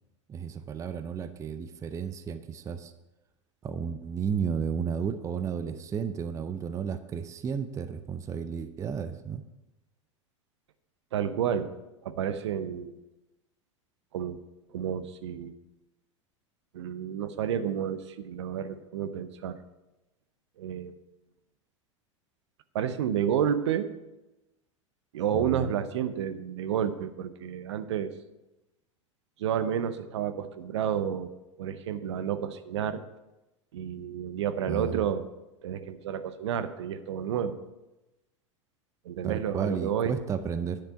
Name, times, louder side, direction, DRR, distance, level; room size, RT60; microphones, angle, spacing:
voice 1, 0.3-2.9 3.6-9.4 25.3-25.7 34.7-35.1 39.2-40.8, right 6 dB, 20° right, 11 dB, 0.5 m, -33 dB
voice 2, 11.1-11.7 12.0-13.0 14.1-14.4 14.7-15.5 16.7-19.6 20.6-21.0 22.7-23.9 25.1-28.1 29.4-31.3 31.6-33.0 33.7-35.3 35.6-37.6 39.0-40.1, right 9 dB, 60° right, 11 dB, 0.7 m, -30 dB
10.0 x 6.8 x 5.7 m, 1.0 s
figure-of-eight pair, 85°, 16 cm